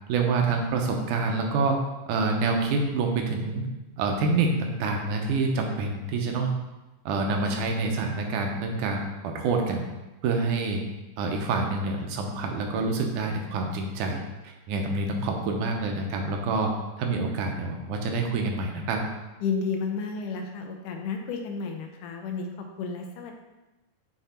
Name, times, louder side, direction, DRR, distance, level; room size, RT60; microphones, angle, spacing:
voice 1, 0.1-1.8 2.1-3.7 4.0-6.5 7.1-9.9 10.2-10.8 11.2-16.7 17.0-19.0, right 3 dB, 85° right, 2 dB, 2.3 m, -27 dB
voice 2, 19.4-23.4, left 5 dB, 90° left, 3 dB, 2.3 m, -32 dB
7.2 x 3.4 x 4.3 m, 1.0 s
omnidirectional pair, 3.5 m